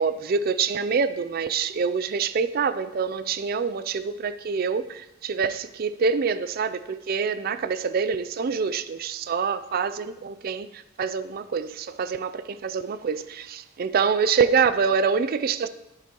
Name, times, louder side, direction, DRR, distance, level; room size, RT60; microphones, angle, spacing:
voice 1, 0.0-15.7, right 5 dB, 45° right, 0.4 m, -26 dB
10.5 x 8.7 x 3.0 m
head